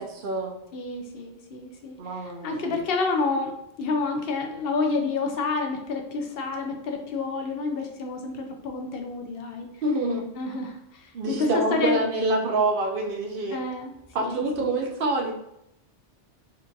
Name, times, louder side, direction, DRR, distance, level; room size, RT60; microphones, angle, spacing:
voice 1, 0.0-0.5 2.0-2.7 9.8-10.3 11.1-13.6 14.1-15.3, right 2 dB, 60° right, 1 dB, 0.6 m, -26 dB
voice 2, 0.7-9.7 10.4-12.0 13.5-13.9 14.2-14.8, left 3 dB, 60° left, 3 dB, 0.7 m, -29 dB
4.4 x 2.4 x 2.6 m, 0.79 s
omnidirectional pair, 1.2 m